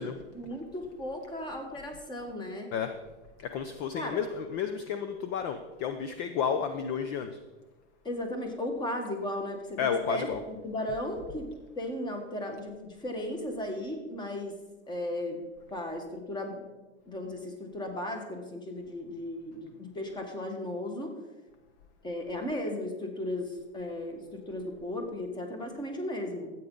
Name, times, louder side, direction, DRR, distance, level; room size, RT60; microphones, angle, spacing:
voice 1, 0.3-2.7 3.9-4.2 8.0-11.5 11.7-14.6 14.9-15.4 15.7-16.6 17.1-21.1 22.0-26.5, left 1 dB, 10° left, 4 dB, 1.4 m, -35 dB
voice 2, 3.4-7.4 9.8-10.4, left 7 dB, 35° left, 8 dB, 0.6 m, -31 dB
13.0 x 8.5 x 3.9 m, 1.2 s
supercardioid pair, 145°, 36 cm